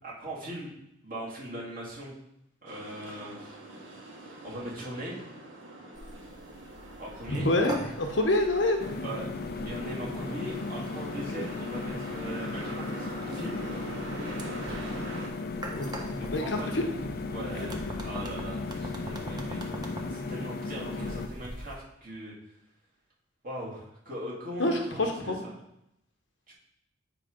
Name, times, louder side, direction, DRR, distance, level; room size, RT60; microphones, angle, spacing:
voice 1, 0.0-0.7 1.0-2.2 2.6-4.0 4.4-5.3 7.0-7.5 9.0-9.2 9.6-13.6 16.0-16.9 17.3-19.6 20.1-22.3 23.4-25.5 26.5-26.6, right 1 dB, 45° right, -6 dB, 2.4 m, -40 dB
sound 1, 2.7-15.3, right 1 dB, 85° right, 1.5 m, -43 dB
sound 2, 5.9-21.8, equal, 20° right, 0.9 m, -44 dB
voice 2, 7.3-8.8 11.4-11.5 15.7-15.9 16.3-16.9 17.6-17.8 24.6-25.4, left 1 dB, 65° left, 4 dB, 0.9 m, -27 dB
sound 3, 8.8-21.3, left 3 dB, 50° left, 0.5 m, -36 dB
8.6 x 3.1 x 5.0 m, 0.82 s
head